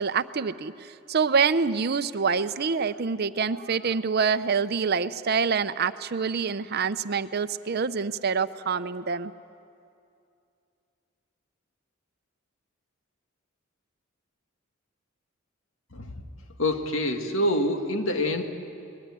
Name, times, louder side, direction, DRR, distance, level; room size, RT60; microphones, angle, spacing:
voice 1, 0.0-9.3, right 5 dB, 50° right, 13 dB, 0.6 m, -26 dB
voice 2, 16.6-18.4, left 1 dB, 75° left, 4 dB, 2.0 m, -26 dB
22.0 x 20.5 x 9.7 m, 2.5 s
head